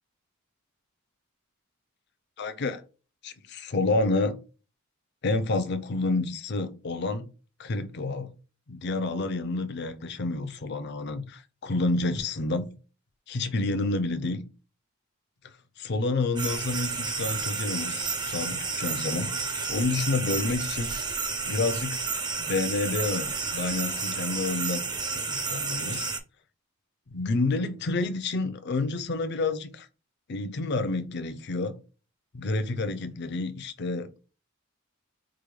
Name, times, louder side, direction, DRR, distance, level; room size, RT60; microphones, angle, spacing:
voice 1, 2.4-2.8 3.2-4.4 5.2-7.3 7.6-8.3 8.7-12.8 13.3-14.4 15.8-20.9 21.5-22.0 22.4-24.8 25.1-26.1 27.1-29.9 30.3-31.8 32.3-34.2, left 2 dB, 50° left, 0.5 m, -29 dB
sound 1, 16.4-26.2, right 4 dB, 20° right, 0.5 m, -31 dB
4.8 x 2.2 x 3.1 m
head